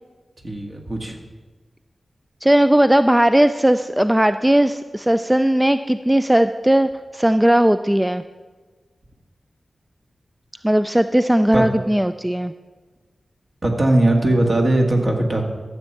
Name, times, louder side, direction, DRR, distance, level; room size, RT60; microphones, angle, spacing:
voice 1, 0.4-1.2 11.5-11.6 13.6-15.4, right 1 dB, 50° right, 1 dB, 1.9 m, -19 dB
voice 2, 2.4-8.2 10.6-12.5, right 1 dB, 10° right, 10 dB, 0.3 m, -17 dB
14.0 x 7.4 x 4.5 m, 1.3 s
wide cardioid pair, 65°, 0 cm